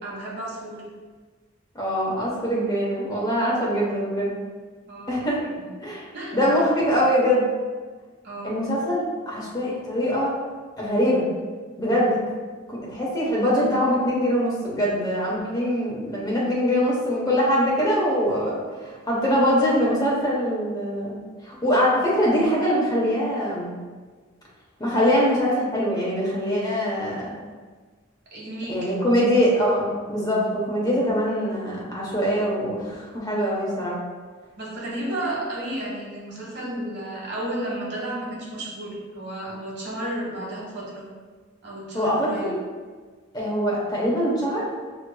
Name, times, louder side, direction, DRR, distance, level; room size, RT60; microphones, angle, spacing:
voice 1, 0.0-0.9 3.7-4.1 4.9-5.2 5.5-5.7 6.1-6.4 8.2-8.6 24.9-25.4 28.3-28.9 34.6-41.1 41.6-42.5, right 1 dB, 55° right, -4 dB, 1.3 m, -33 dB
voice 2, 1.7-4.3 5.1-5.4 5.8-6.0 6.3-7.4 8.4-10.3 10.8-11.2 11.8-12.2 12.7-23.7 24.8-27.3 28.7-34.0 41.9-42.6 43.3-44.6, equal, 20° left, -5 dB, 0.9 m, -23 dB
6.6 x 3.1 x 2.2 m, 1.5 s
head